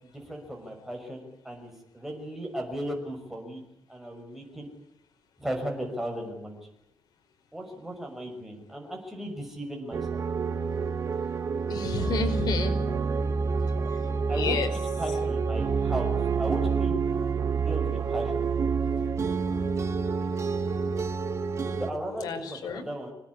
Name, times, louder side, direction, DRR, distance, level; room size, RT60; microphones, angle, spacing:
voice 1, 0.0-3.6 3.9-4.7 5.4-6.7 7.5-10.2 14.3-14.6 15.0-17.0 17.5-18.5 21.8-23.1, right 1 dB, 5° right, 1 dB, 6.2 m, -36 dB
sound 1, 9.9-21.9, right 5 dB, 45° right, 1.6 m, -28 dB
voice 2, 11.7-12.7 14.3-14.7 22.2-22.8, left 5 dB, 75° left, 5 dB, 5.1 m, -30 dB
25.5 x 18.5 x 9.8 m, 0.79 s
cardioid pair, 145°, 7 cm